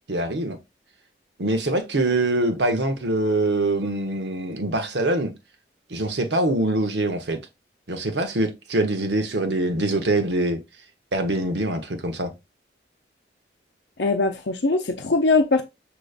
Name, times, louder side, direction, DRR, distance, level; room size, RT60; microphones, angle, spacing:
voice 1, 0.1-0.6 1.4-5.3 5.9-7.4 7.9-10.6 11.1-12.3, right 2 dB, 85° right, 1.0 m, -24 dB
voice 2, 14.0-15.6, left 3 dB, 75° left, 0.6 m, -21 dB
6.5 x 3.0 x 2.4 m
head